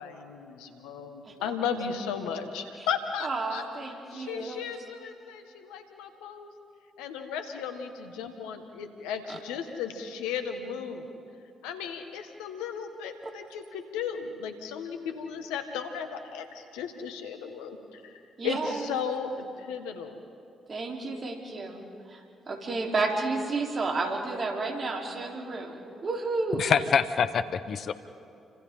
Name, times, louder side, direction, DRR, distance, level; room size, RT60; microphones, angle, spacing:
voice 1, 0.0-3.6 4.1-6.5 7.0-11.1 11.6-20.2, left 7 dB, 85° left, 6 dB, 1.8 m, -35 dB
voice 2, 3.2-4.7 9.3-9.4 18.4-18.9 20.7-22.2 22.5-26.7, right 3 dB, 45° right, 1 dB, 3.9 m, -31 dB
voice 3, 26.6-27.9, left 7 dB, 60° left, 12 dB, 1.0 m, -25 dB
30.0 x 26.0 x 3.9 m, 2.5 s
hypercardioid pair, 45°, 0 cm